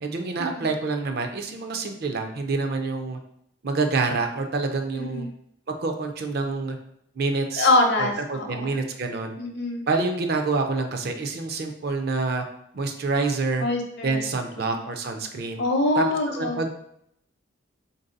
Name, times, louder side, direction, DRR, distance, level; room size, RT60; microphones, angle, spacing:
voice 1, 0.0-3.2 3.6-5.3 5.8-6.8 7.2-7.7 8.0-9.4 9.9-12.4 12.7-13.7 14.0-15.6 16.0-16.1 16.4-16.7, right 3 dB, 50° right, 5 dB, 0.4 m, -27 dB
voice 2, 5.0-5.3 7.6-8.7 9.4-9.8 13.6-14.3 14.6-14.7 15.6-16.6, left 2 dB, 55° left, 3 dB, 0.6 m, -24 dB
3.9 x 2.6 x 3.8 m, 0.75 s
head